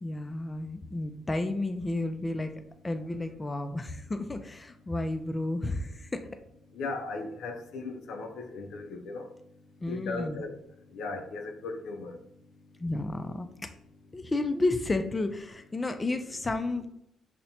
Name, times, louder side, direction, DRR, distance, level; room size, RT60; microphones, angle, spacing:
voice 1, 0.0-2.5 2.8-6.3 9.8-10.4 12.8-13.7 14.1-16.9, left 2 dB, 20° left, 0.3 m, -32 dB
voice 2, 6.7-9.3 9.9-10.5 10.9-12.2, left 3 dB, 80° left, 0.5 m, -37 dB
5.5 x 2.1 x 2.8 m
cardioid pair, 90°, 0 cm